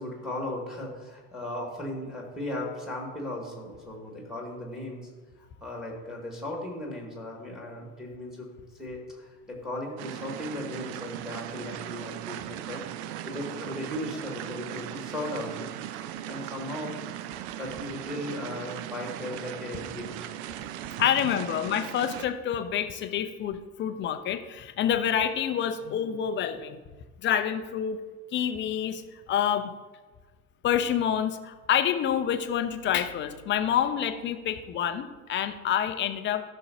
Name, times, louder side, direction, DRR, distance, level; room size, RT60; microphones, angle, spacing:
voice 1, 0.0-5.1 5.4-8.5 8.8-15.7 16.3-17.0 17.3-20.3 21.3-21.5, left 1 dB, ahead, 0 dB, 2.2 m, -37 dB
sound 1, 10.0-22.3, right 12 dB, 45° right, 0.5 m, -38 dB
voice 2, 21.0-26.8 27.2-28.0 28.3-29.0 29.3-29.7 30.6-36.4, left 9 dB, 25° left, 9 dB, 0.6 m, -27 dB
14.5 x 6.4 x 2.8 m, 1.3 s
figure-of-eight pair, 70°, 46 cm